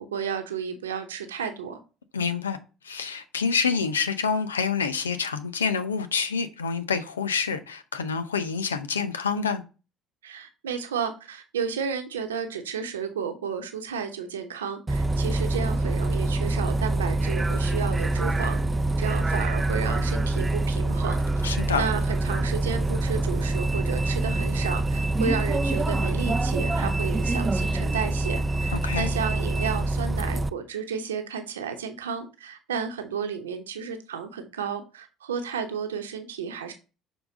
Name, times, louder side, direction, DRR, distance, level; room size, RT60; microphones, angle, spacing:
voice 1, 0.1-1.8 10.2-18.6 19.0-36.7, right 6 dB, 75° right, 0.9 m, -32 dB
voice 2, 2.1-2.6 2.8-9.6 21.4-21.8 28.8-29.1, left 5 dB, 80° left, 0.6 m, -27 dB
Bus, 14.9-30.5, right 2 dB, 20° right, 0.5 m, -25 dB
6.8 x 4.0 x 3.7 m
figure-of-eight pair, 55°, 0 cm